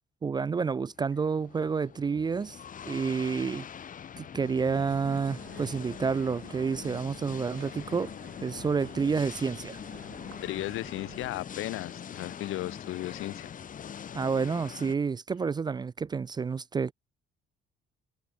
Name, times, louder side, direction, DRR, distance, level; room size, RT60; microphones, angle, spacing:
voice 1, 0.2-2.6 2.8-3.7 4.2-8.1 8.4-9.8 14.1-16.9, right 5 dB, 20° right, 0.4 m, -29 dB
sound 1, 0.9-15.0, left 8 dB, 40° left, 1.7 m, -43 dB
sound 2, 4.7-11.4, right 13 dB, 70° right, 2.5 m, -52 dB
voice 2, 10.4-13.5, left 16 dB, 80° left, 1.1 m, -35 dB
cardioid pair, 130°, 21 cm